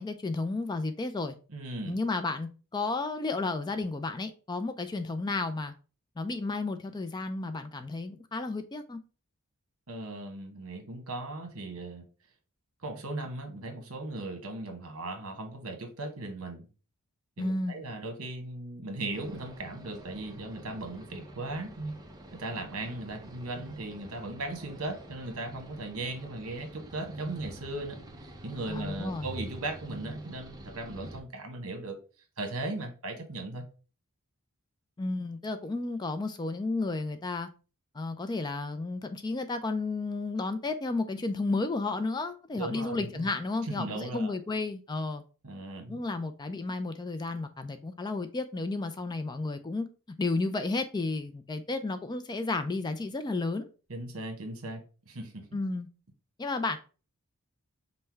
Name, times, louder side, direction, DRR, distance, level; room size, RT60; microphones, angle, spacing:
voice 1, 0.0-1.4 1.9-5.7 6.2-9.0 17.4-17.8 28.7-29.3 35.0-37.5 37.9-45.2 45.9-49.9 50.2-53.7 55.5-55.9 56.4-56.8, left 3 dB, 20° left, 0.3 m, -32 dB
voice 2, 1.5-2.0 9.9-12.1 12.8-16.7 17.4-22.0 22.3-32.0 32.4-33.7 42.6-43.3 43.6-44.3 45.4-46.0 53.9-54.8 55.1-55.5, right 2 dB, 65° right, 1.2 m, -37 dB
sound 1, 19.1-31.2, right 1 dB, 15° right, 0.6 m, -47 dB
5.4 x 2.2 x 4.4 m
head